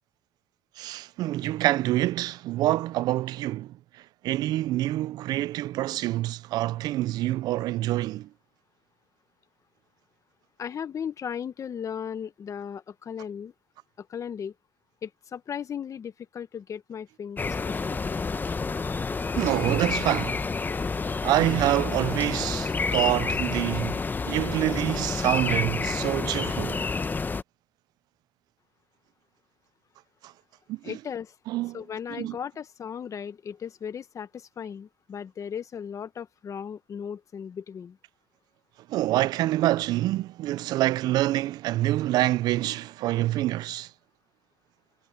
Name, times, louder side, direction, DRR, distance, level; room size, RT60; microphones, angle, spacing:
voice 1, 0.8-8.3 19.3-20.4 21.2-24.0 24.3-26.8 30.2-30.3 30.7-30.9 31.5-31.8 32.2-32.4 38.9-43.9, right 15 dB, 80° right, 0.4 m, -26 dB
voice 2, 10.6-13.5 14.0-14.5 15.0-18.3 30.8-31.3 31.7-38.0, left 8 dB, 50° left, 1.2 m, -36 dB
sound 1, 17.4-27.4, left 4 dB, 30° left, 0.8 m, -29 dB
supercardioid pair, 75°, 7 cm